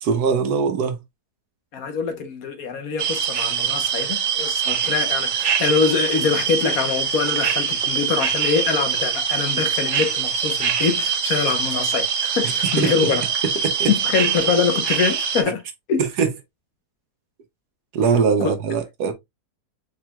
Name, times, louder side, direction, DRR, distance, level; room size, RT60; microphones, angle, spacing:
voice 1, 0.0-1.0 12.8-12.9 13.6-13.9 16.2-16.3 17.9-19.1, right 6 dB, 80° right, 1.4 m, -21 dB
voice 2, 1.7-13.2 13.9-15.6 15.9-16.0 18.4-18.5, left 6 dB, 65° left, 1.3 m, -24 dB
sound 1, 3.0-15.4, right 7 dB, 55° right, 0.9 m, -23 dB
4.6 x 4.6 x 2.3 m
omnidirectional pair, 1.7 m